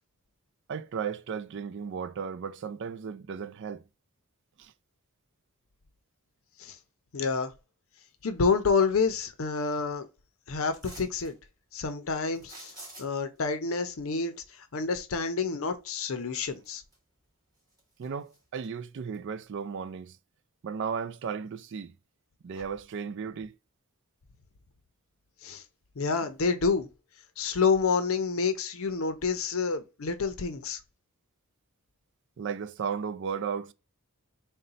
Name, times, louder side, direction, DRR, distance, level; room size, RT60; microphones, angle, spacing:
voice 1, 0.7-3.8 4.6-4.7 18.0-20.2 20.6-21.9 22.4-23.5 32.4-33.7, right 6 dB, 55° right, 0.3 m, -35 dB
voice 2, 7.1-7.5 8.2-10.1 10.5-11.4 11.7-12.7 13.0-14.3 14.7-16.8 25.4-25.6 26.0-26.9 27.4-30.8, left 5 dB, 65° left, 0.6 m, -28 dB
sound 1, 10.7-11.3 12.3-13.4 15.9-16.0 16.5-17.2 17.6-18.7 19.1-19.2, right 1 dB, 20° right, 2.3 m, -48 dB
3.9 x 2.2 x 3.8 m
head